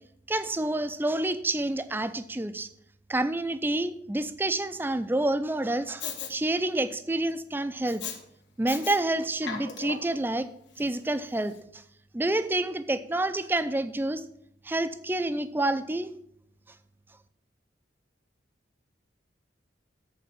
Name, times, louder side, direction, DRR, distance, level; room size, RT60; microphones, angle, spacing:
voice 1, 0.3-2.7 3.1-8.0 8.6-10.5 10.8-11.8 12.1-14.2 14.6-16.1, right 1 dB, 10° right, 12 dB, 0.4 m, -28 dB
Respiratory sounds, 6.0-6.3 7.9-8.2 8.7-9.0 9.3-10.1 10.8-10.9, left 6 dB, 80° left, 1.5 m, -36 dB
8.3 x 4.6 x 7.4 m, 0.70 s
head